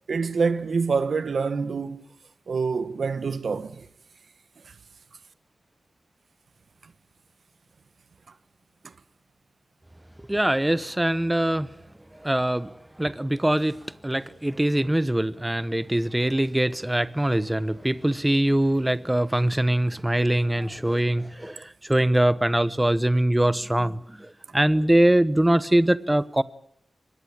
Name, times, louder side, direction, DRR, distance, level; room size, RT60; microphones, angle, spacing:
voice 1, 0.1-2.0 2.5-3.9 4.7-4.8 6.8-6.9, right 5 dB, 80° right, 1.3 m, -26 dB
voice 2, 10.3-11.7 12.2-26.4, right 1 dB, 15° right, 1.0 m, -23 dB
24.5 x 21.0 x 8.9 m
wide cardioid pair, 75°, 0 cm